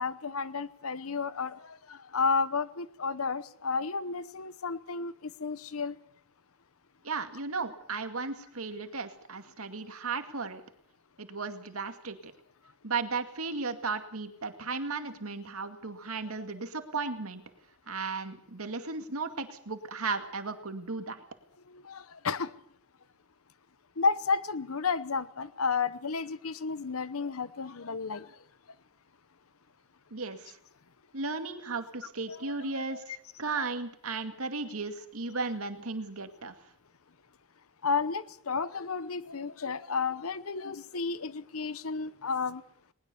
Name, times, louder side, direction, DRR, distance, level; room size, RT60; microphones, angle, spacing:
voice 1, 0.0-6.0 21.7-22.5 24.0-28.3 32.3-32.5 32.9-33.0 33.5-33.6 37.8-42.6, left 4 dB, 75° left, 16 dB, 0.9 m, -32 dB
voice 2, 7.0-10.6 11.2-12.3 12.8-17.4 17.9-21.2 30.1-30.5 31.1-33.0 33.4-36.5, right 4 dB, 80° right, 7 dB, 2.3 m, -35 dB
20.5 x 20.5 x 7.0 m, 0.68 s
head